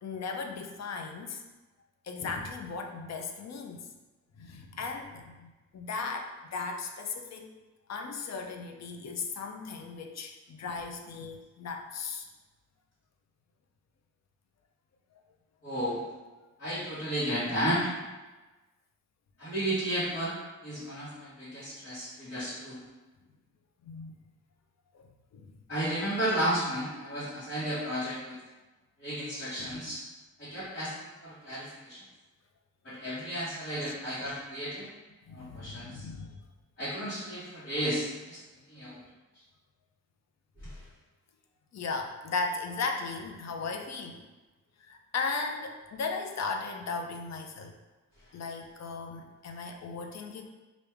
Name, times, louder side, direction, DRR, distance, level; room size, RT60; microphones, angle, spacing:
voice 1, 0.0-1.4 2.0-3.9 4.4-7.5 7.9-12.3 23.8-24.1 24.9-25.1 25.3-25.5 29.6-29.8 33.8-34.0 35.3-36.4 41.7-44.2 44.8-47.7 48.3-50.4, left 4 dB, 50° left, 4 dB, 0.5 m, -36 dB
voice 2, 15.6-16.0 16.6-17.9 19.4-20.4 20.6-22.8 25.7-28.4 29.0-30.0 30.4-32.0 32.8-34.9 35.3-36.0 36.8-38.4 38.7-39.0 40.6-40.8, equal, 35° left, -12 dB, 1.3 m, -33 dB
3.4 x 2.5 x 3.3 m, 1.2 s
cardioid pair, 85°, 33 cm